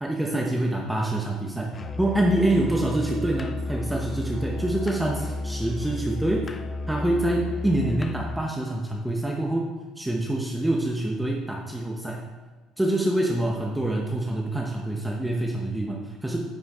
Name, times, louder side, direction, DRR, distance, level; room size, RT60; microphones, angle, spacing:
voice 1, 0.0-6.5 6.9-9.7 10.0-12.2 12.8-16.4, right 1 dB, 5° right, -1 dB, 0.8 m, -26 dB
Musical instrument, 1.7-8.5, left 2 dB, 25° left, 0.4 m, -32 dB
9.7 x 8.1 x 3.5 m, 1.3 s
cardioid pair, 140°, 0 cm